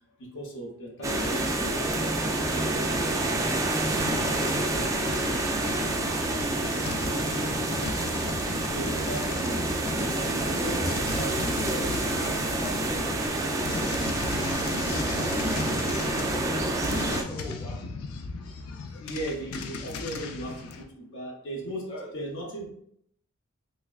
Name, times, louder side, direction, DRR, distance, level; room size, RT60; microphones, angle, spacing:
voice 1, 0.2-2.1 8.6-11.4 19.0-20.7 20.9-22.7, right 1 dB, 60° left, -2 dB, 0.8 m, -37 dB
sound 1, 1.0-17.2, right 2 dB, 15° right, 0.3 m, -28 dB
sound 2, 3.9-20.8, left 4 dB, 85° left, 0.4 m, -37 dB
voice 2, 10.6-17.8 21.9-22.1, equal, 25° left, -3 dB, 0.8 m, -39 dB
3.4 x 3.2 x 2.3 m, 0.68 s
head